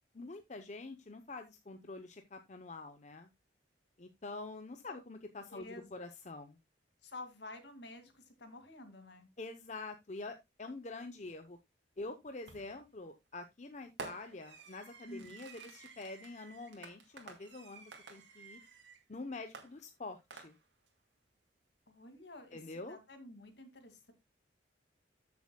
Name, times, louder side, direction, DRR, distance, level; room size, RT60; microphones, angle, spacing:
voice 1, 0.1-3.3 4.0-6.6 9.4-11.6 12.0-18.6 19.1-20.6 22.5-23.0, left 3 dB, 40° left, 7 dB, 0.7 m, -46 dB
voice 2, 5.5-6.1 7.0-9.3 15.1-15.4 21.9-24.1, left 2 dB, 65° left, 7 dB, 2.2 m, -51 dB
Fireworks, 12.5-12.9 14.0-19.0 19.5-20.9, right 4 dB, 75° right, 2.1 m, -51 dB
14.0 x 7.1 x 2.2 m, 0.20 s
head